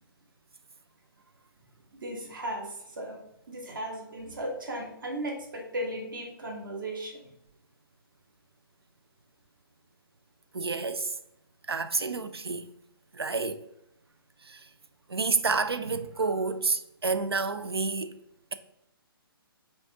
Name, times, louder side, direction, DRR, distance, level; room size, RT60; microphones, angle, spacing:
voice 1, 1.9-3.2 3.5-7.3, right 1 dB, 60° right, 1.2 m, -36 dB
voice 2, 10.5-11.1 11.7-12.6 13.1-13.6 14.4-14.7 15.1-18.1, right 4 dB, 90° right, 0.4 m, -29 dB
5.1 x 2.3 x 2.7 m
figure-of-eight pair, 135°, 13 cm